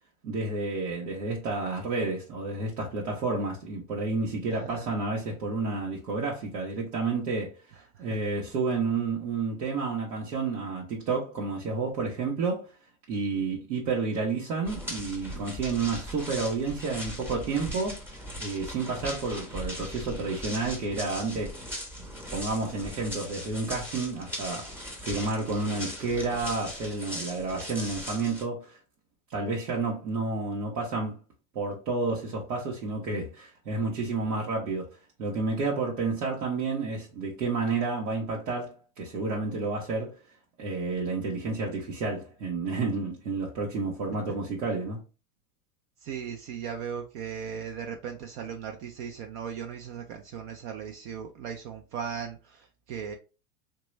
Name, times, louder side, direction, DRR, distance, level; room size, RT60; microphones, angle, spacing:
voice 1, 0.2-7.5 8.0-12.7 13.1-18.0 18.4-21.6 22.1-24.8 25.0-28.8 29.3-31.2 31.5-34.9 35.2-40.2 40.6-45.0, right 3 dB, 85° right, 1.0 m, -30 dB
voice 2, 4.5-4.9 7.7-8.2 46.0-53.1, right 7 dB, 55° right, 0.5 m, -38 dB
sound 1, 14.7-28.5, equal, 5° right, 0.8 m, -39 dB
2.9 x 2.3 x 3.0 m
hypercardioid pair, 100°, 46 cm